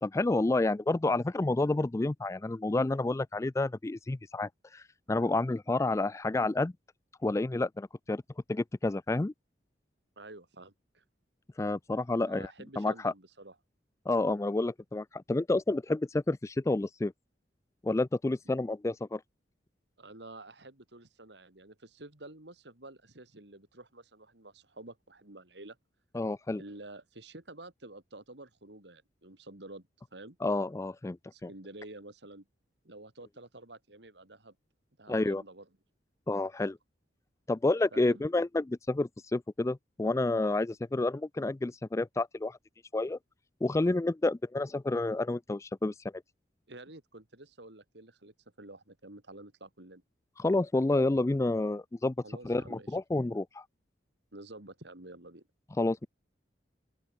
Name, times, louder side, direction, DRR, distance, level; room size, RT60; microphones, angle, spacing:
voice 1, 0.0-4.8 5.1-6.7 7.2-8.2 8.5-9.3 11.6-13.1 14.1-17.1 17.8-19.2 26.1-26.6 30.4-31.5 35.1-35.4 36.3-36.8 37.5-42.6 42.9-43.2 43.6-46.2 50.4-52.1 52.4-53.6 55.8-56.1, left 2 dB, 15° left, 0.3 m, -29 dB
voice 2, 10.2-11.0 12.1-13.5 20.0-25.8 26.6-30.4 31.3-32.5 32.8-34.5 35.0-35.7 37.9-38.2 46.7-50.0 52.2-52.9 54.3-55.5, right 2 dB, 70° right, 3.2 m, -49 dB
open air
head